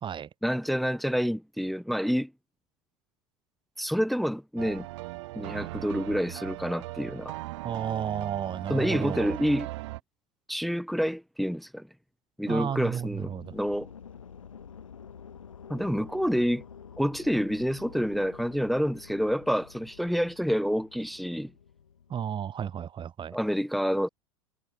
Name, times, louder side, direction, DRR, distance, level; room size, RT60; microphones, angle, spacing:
voice 1, 0.4-2.3 3.8-4.9 5.3-7.3 8.7-9.7 10.5-11.9 12.4-13.9 15.7-16.6 17.0-21.5 23.3-24.1, equal, ahead, 1.5 m, -28 dB
sound 1, 4.6-10.0, right 20 dB, 65° right, 4.4 m, -38 dB
voice 2, 7.6-9.4 12.5-13.5 22.1-23.4, right 8 dB, 30° right, 1.7 m, -33 dB
sound 2, 12.9-22.8, left 7 dB, 85° left, 2.6 m, -49 dB
hypercardioid pair, 85°, 16 cm